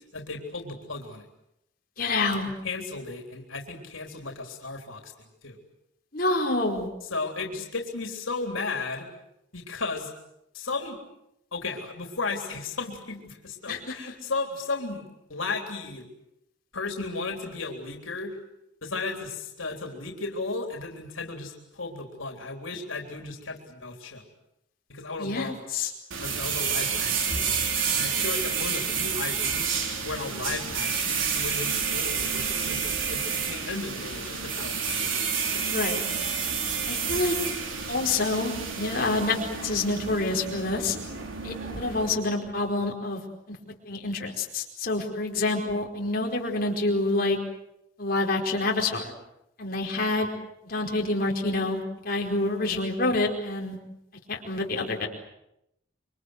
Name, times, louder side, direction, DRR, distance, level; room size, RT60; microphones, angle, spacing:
voice 1, 0.1-1.3 2.6-5.6 7.1-9.1 9.5-10.1 10.5-11.0 11.5-16.1 16.7-18.4 18.8-24.2 24.9-25.6 26.2-27.5 27.9-29.8 30.0-35.2 35.5-35.6, left 3 dB, 90° left, 3 dB, 3.7 m, -35 dB
voice 2, 2.0-2.5 6.1-6.9 13.7-13.9 25.2-25.9 35.7-36.0 36.9-37.3 37.9-41.0 41.4-43.2 43.5-43.6 43.8-47.4 48.0-49.1 49.6-50.3 50.6-53.8 54.3-55.1, left 2 dB, 45° left, -1 dB, 4.7 m, -27 dB
sound 1, 26.1-42.2, right 6 dB, 80° right, 3.9 m, -29 dB
27.0 x 24.0 x 8.1 m, 0.84 s
head